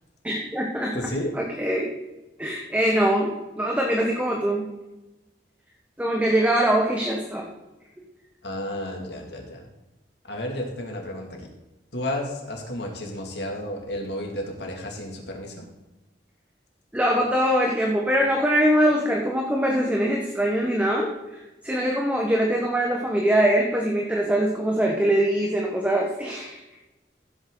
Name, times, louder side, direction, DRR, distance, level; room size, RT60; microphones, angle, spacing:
voice 1, 0.2-0.9 1.3-1.9 2.4-4.7 6.0-7.5 16.9-26.6, right 1 dB, 10° right, -1 dB, 1.2 m, -23 dB
voice 2, 0.9-1.3 8.4-9.7 10.2-11.5 11.9-15.7, left 1 dB, 75° left, 1 dB, 2.4 m, -32 dB
15.0 x 8.2 x 3.9 m, 1.0 s
head